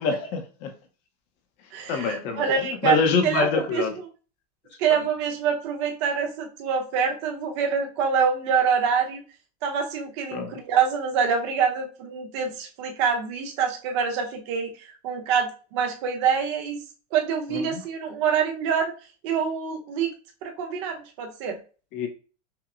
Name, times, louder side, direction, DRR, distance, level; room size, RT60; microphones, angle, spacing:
voice 1, 0.0-0.7 1.9-2.5 2.8-3.9 4.9-5.0 10.3-10.6 17.5-17.8 21.9-22.1, left 4 dB, 35° left, 5 dB, 0.6 m, -25 dB
voice 2, 1.7-3.8 4.8-9.2 9.6-16.8 17.1-18.9 19.2-20.1 20.4-21.6, right 6 dB, 45° right, 3 dB, 0.8 m, -25 dB
5.7 x 2.0 x 2.4 m, 0.37 s
supercardioid pair, 180°, 21 cm